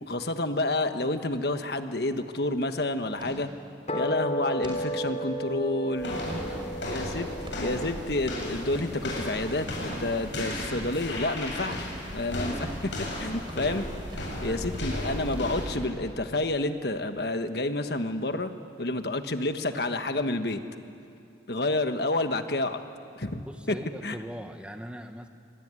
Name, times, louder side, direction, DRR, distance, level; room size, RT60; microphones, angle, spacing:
voice 1, 0.0-3.5 3.9-6.2 6.8-11.9 12.1-12.9 13.2-13.9 14.1-18.5 18.8-20.6 21.5-22.8 23.2-24.2, left 2 dB, 65° left, 8 dB, 1.4 m, -29 dB
sound 1, 1.2-1.5 1.8-1.9 2.2-2.5 3.2-3.4 3.9-4.0 4.6-4.8 5.3-5.4 6.0-6.5 7.5-7.8 8.7-8.9 9.9-10.1 10.8-11.0 11.7-11.9 12.6-12.8 13.4-13.7 14.1-14.4 14.7-14.9 15.3-15.8, right 1 dB, 25° right, 5.7 m, -42 dB
sound 2, 3.9-10.4, right 1 dB, 40° left, 3.4 m, -35 dB
sound 3, 6.0-15.9, left 1 dB, 85° left, 7.9 m, -35 dB
voice 2, 6.5-6.9 14.4-14.8 23.4-25.3, equal, 5° right, 6 dB, 1.1 m, -40 dB
25.0 x 22.5 x 9.8 m, 2.5 s
head